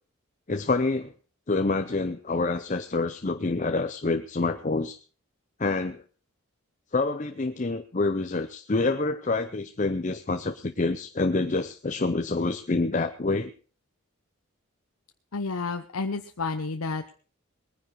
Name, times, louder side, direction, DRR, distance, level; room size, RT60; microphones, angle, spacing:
voice 1, 0.5-1.1 1.5-5.0 5.6-6.0 6.9-13.5, left 3 dB, 35° left, 8 dB, 0.6 m, -27 dB
voice 2, 15.3-17.1, left 4 dB, 90° left, 7 dB, 0.8 m, -31 dB
20.0 x 9.9 x 4.6 m, 0.39 s
head